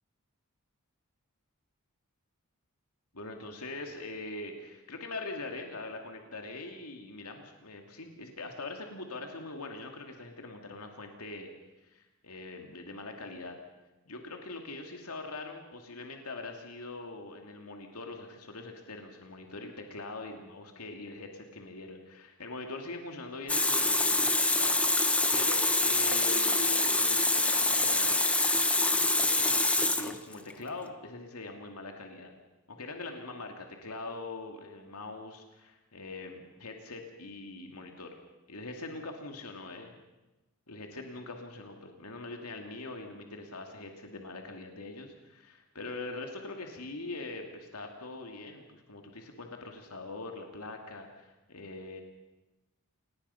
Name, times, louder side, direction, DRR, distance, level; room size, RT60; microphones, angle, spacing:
voice 1, 3.1-11.5 11.8-13.6 14.1-28.2 29.0-32.3 32.7-38.1 38.5-40.0 40.7-52.0, left 2 dB, 85° left, 3 dB, 2.5 m, -42 dB
Water tap faucet, 23.5-30.5, left 2 dB, 5° left, 1.0 m, -26 dB
28.0 x 19.5 x 5.7 m, 1.1 s
head